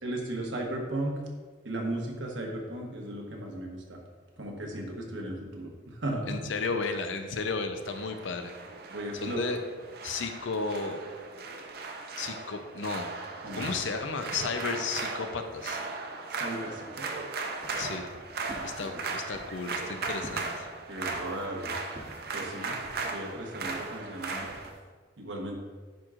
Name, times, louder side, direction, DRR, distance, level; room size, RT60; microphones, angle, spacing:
voice 1, 0.0-1.2 1.6-4.0 4.4-6.5 8.9-9.4 13.4-13.7 16.3-17.4 18.5-18.9 20.9-21.8 22.3-22.7 23.0-24.5 25.2-25.6, right 1 dB, 75° right, 1 dB, 1.1 m, -36 dB
voice 2, 6.3-8.5 9.2-9.6 10.0-11.0 12.2-13.1 13.5-15.8 17.7-18.1 18.6-20.7, left 4 dB, 80° left, 6 dB, 0.6 m, -33 dB
sound 1, 7.8-24.7, right 3 dB, 50° right, 0.6 m, -37 dB
sound 2, 17.5-24.8, equal, 35° right, 1.1 m, -50 dB
10.5 x 4.6 x 2.5 m, 1.5 s
head